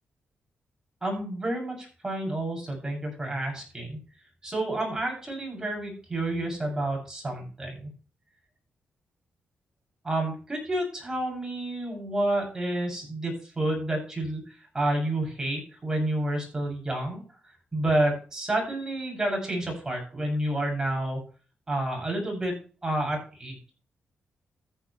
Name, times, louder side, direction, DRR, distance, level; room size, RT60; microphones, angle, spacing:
voice 1, 1.0-4.0 4.4-7.9 10.0-17.2 17.7-21.2 21.7-22.5 22.8-23.7, right 1 dB, 15° right, 0 dB, 7.4 m, -29 dB
14.0 x 9.7 x 3.3 m, 0.36 s
wide cardioid pair, 135°, 4 cm